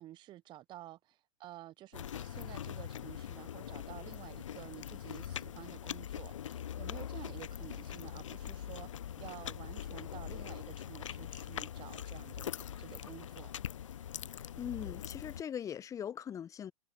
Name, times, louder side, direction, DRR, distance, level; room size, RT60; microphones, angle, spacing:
voice 1, 0.0-12.5 12.8-13.5, right 14 dB, 30° right, 0.7 m, -51 dB
sound 1, 1.9-15.4, left 10 dB, 70° left, 0.6 m, -42 dB
voice 2, 14.6-16.7, left 9 dB, 20° left, 0.7 m, -40 dB
figure-of-eight pair, 95°, 17 cm